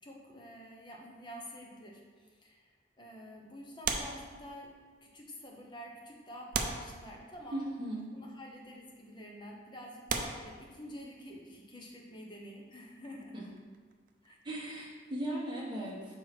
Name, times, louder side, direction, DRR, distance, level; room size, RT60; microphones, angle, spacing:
voice 1, 0.0-2.7 3.0-4.7 5.0-7.6 8.1-13.5 14.2-14.4 14.7-14.9, equal, 25° left, -1 dB, 1.0 m, -48 dB
sound 1, 3.8-4.9 5.7-5.8 6.5-7.6 8.6-8.8 9.4-9.5 10.1-11.3 13.2-15.0 15.2-15.4, right 5 dB, 50° right, 0.5 m, -38 dB
voice 2, 7.5-8.0 13.3-13.4 14.4-16.2, right 1 dB, 25° right, -4 dB, 1.3 m, -37 dB
4.7 x 4.4 x 6.0 m, 1.5 s
head